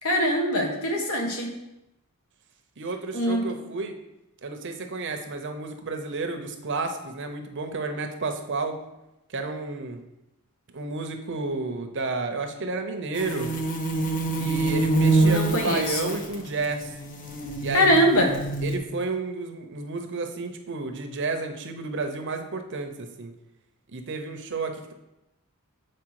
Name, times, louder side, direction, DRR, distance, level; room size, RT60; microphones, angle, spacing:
voice 1, 0.0-1.5 3.1-3.4 15.2-16.1 17.7-18.3, equal, 70° left, 2 dB, 1.3 m, -23 dB
voice 2, 2.8-4.0 4.4-8.8 9.3-10.0 10.7-13.5 14.4-16.9 17.6-18.0 18.6-23.3 23.9-24.9, right 3 dB, 55° right, 6 dB, 0.8 m, -31 dB
sound 1, 13.1-18.8, right 2 dB, 40° left, 0.8 m, -25 dB
7.5 x 4.5 x 4.7 m, 0.93 s
head